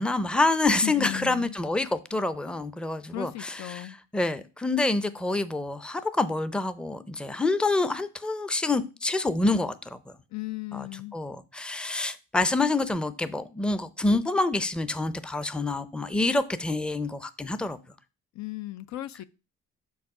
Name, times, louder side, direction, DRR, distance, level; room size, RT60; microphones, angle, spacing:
voice 1, 0.0-3.9 4.1-10.1 10.7-10.8 11.1-17.8, left 2 dB, 5° left, 0.5 m, -27 dB
voice 2, 0.8-1.6 3.1-4.0 10.3-11.2 18.3-19.2, left 16 dB, 65° left, 0.5 m, -36 dB
5.9 x 4.7 x 4.8 m
cardioid pair, 90°, 30 cm